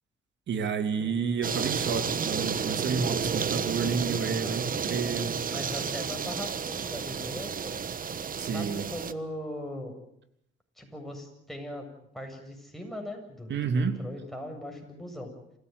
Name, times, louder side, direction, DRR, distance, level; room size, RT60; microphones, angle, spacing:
voice 1, 0.5-5.7 8.4-8.9 13.5-14.0, right 5 dB, 65° right, 9 dB, 3.0 m, -30 dB
sound 1, 1.4-9.1, right 6 dB, 45° right, 1.3 m, -31 dB
voice 2, 4.3-5.1 5.5-7.8 8.4-10.0 10.8-11.9 12.1-15.3, left 1 dB, ahead, 2 dB, 7.7 m, -40 dB
27.5 x 16.5 x 9.7 m, 0.74 s
cardioid pair, 90°, 20 cm